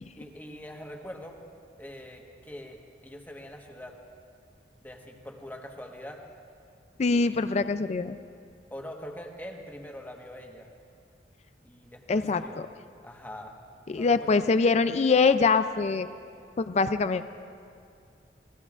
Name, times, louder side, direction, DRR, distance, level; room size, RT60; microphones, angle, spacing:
voice 1, 0.1-1.4 1.8-4.0 4.8-6.2 7.1-7.6 8.7-10.7 11.6-12.6 13.0-13.6 13.9-14.4, equal, 10° left, 1 dB, 1.3 m, -43 dB
voice 2, 7.0-8.2 12.1-12.4 13.9-16.1 16.6-17.2, left 4 dB, 40° left, 11 dB, 0.4 m, -23 dB
27.5 x 19.0 x 2.5 m, 2.3 s
head